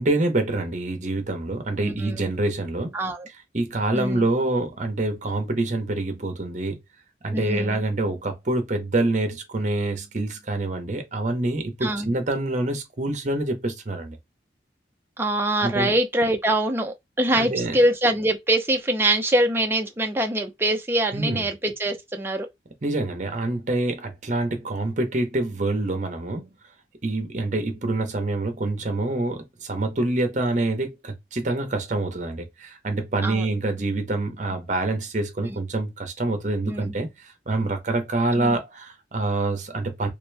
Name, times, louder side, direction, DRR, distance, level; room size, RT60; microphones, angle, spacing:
voice 1, 0.0-2.9 3.5-6.8 7.2-14.2 15.6-15.9 17.3-17.8 21.1-21.4 22.8-26.5 27.0-40.1, right 2 dB, 45° right, 0.9 m, -26 dB
voice 2, 1.8-2.3 2.9-3.3 3.9-4.3 7.3-7.8 11.8-12.1 15.2-22.5 33.2-33.5 36.6-36.9 38.3-38.6, right 1 dB, 15° right, 0.5 m, -24 dB
3.3 x 2.9 x 3.3 m
head